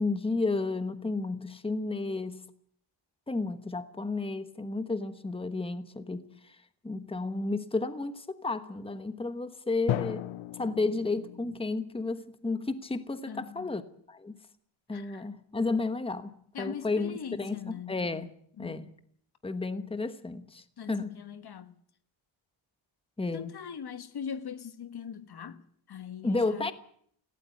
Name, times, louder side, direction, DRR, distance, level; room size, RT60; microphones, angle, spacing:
voice 1, 0.0-2.4 3.3-6.6 6.8-10.3 10.5-13.8 14.1-14.4 14.9-16.3 16.6-18.3 18.6-18.9 19.4-21.2 23.2-23.5 26.2-26.7, left 3 dB, 10° left, 1.2 m, -32 dB
Drum, 9.9-11.8, left 14 dB, 75° left, 0.8 m, -35 dB
voice 2, 13.3-13.7 14.9-15.2 16.5-17.9 18.6-18.9 20.8-21.7 23.3-25.6 25.9-26.7, left 7 dB, 50° left, 1.3 m, -41 dB
17.5 x 16.5 x 9.5 m
wide cardioid pair, 145°, 48 cm